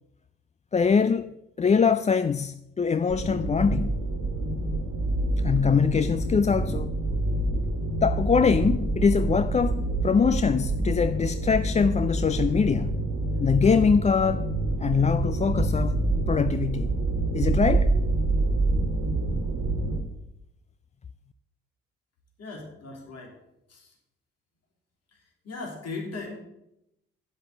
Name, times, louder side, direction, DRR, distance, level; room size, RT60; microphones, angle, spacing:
voice 1, 0.7-4.0 5.4-6.9 8.0-13.0 13.4-14.5 14.8-16.0 16.3-16.9 17.3-17.9, left 6 dB, 25° left, 0.4 m, -23 dB
sound 1, 3.1-20.0, right 2 dB, 70° right, 1.7 m, -27 dB
voice 2, 22.4-23.3 23.7-23.9 25.4-26.4, left 3 dB, 55° left, 3.1 m, -37 dB
8.7 x 7.8 x 7.9 m
hypercardioid pair, 40°, 30 cm